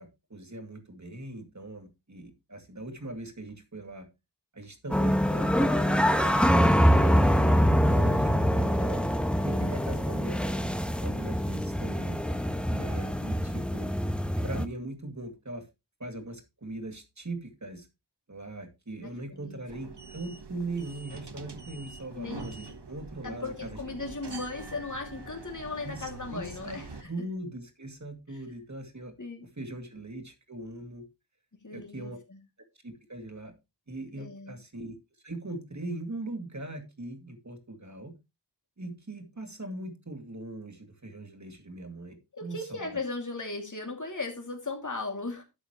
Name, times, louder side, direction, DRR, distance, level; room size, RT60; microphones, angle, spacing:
voice 1, 0.0-4.1 4.5-9.0 9.4-10.7 11.0-12.2 12.7-13.9 14.4-15.7 16.0-17.9 18.3-23.8 25.8-26.8 27.1-29.1 29.6-31.0 31.7-32.2 32.8-33.5 33.9-34.9 35.2-38.1 38.8-42.9, right 2 dB, 45° right, 2.4 m, -40 dB
sound 1, 4.9-14.7, equal, 5° left, 1.0 m, -24 dB
voice 2, 19.0-19.6 22.2-22.4 23.2-27.1 28.3-28.4 29.2-29.5 31.5-32.4 34.2-34.6 42.3-45.4, left 3 dB, 45° left, 2.6 m, -37 dB
sound 2, 19.7-27.0, right 3 dB, 75° right, 1.4 m, -44 dB
11.5 x 7.9 x 3.0 m
wide cardioid pair, 45°, 41 cm